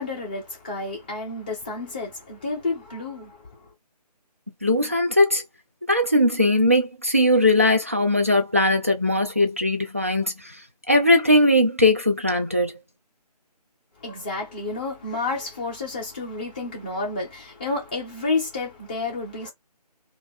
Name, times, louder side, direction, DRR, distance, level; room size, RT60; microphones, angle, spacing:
voice 1, 0.0-3.3 14.0-19.5, left 3 dB, 15° left, 0.8 m, -30 dB
voice 2, 4.6-5.4 5.9-10.3 10.9-12.7, left 1 dB, 20° right, 0.3 m, -19 dB
2.9 x 2.5 x 3.5 m
figure-of-eight pair, 155°, 21 cm